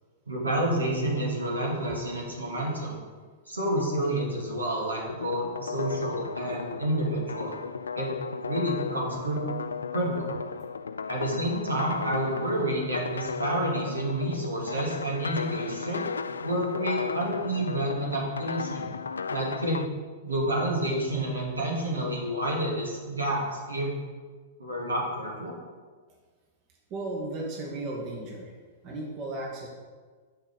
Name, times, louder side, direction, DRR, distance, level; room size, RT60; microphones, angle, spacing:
voice 1, 0.3-3.0 3.5-7.5 7.9-8.1 8.4-9.4 9.9-10.3 11.1-16.1 16.4-18.9 19.3-19.9 20.2-23.9 24.6-25.5, right 1 dB, 80° right, -3 dB, 2.4 m, -29 dB
sound 1, 5.1-19.8, left 5 dB, 75° left, 0.3 m, -35 dB
voice 2, 26.9-28.5 28.8-29.7, right 2 dB, 40° right, -2 dB, 2.0 m, -35 dB
7.0 x 5.9 x 6.9 m, 1.5 s
figure-of-eight pair, 100°, 0 cm